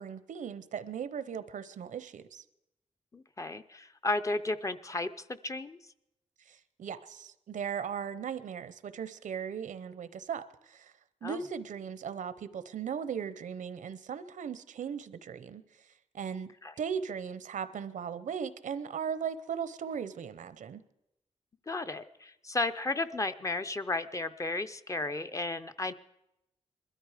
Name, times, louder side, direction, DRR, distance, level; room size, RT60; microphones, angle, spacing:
voice 1, 0.0-2.4 6.5-10.9 11.2-15.6 16.1-16.5 16.8-20.8, right 7 dB, 85° right, 14 dB, 0.7 m, -38 dB
voice 2, 3.1-5.8 11.2-11.4 16.6-16.7 21.7-25.9, left 2 dB, 25° left, 10 dB, 0.5 m, -34 dB
21.0 x 13.0 x 4.9 m, 0.86 s
wide cardioid pair, 125°, 13 cm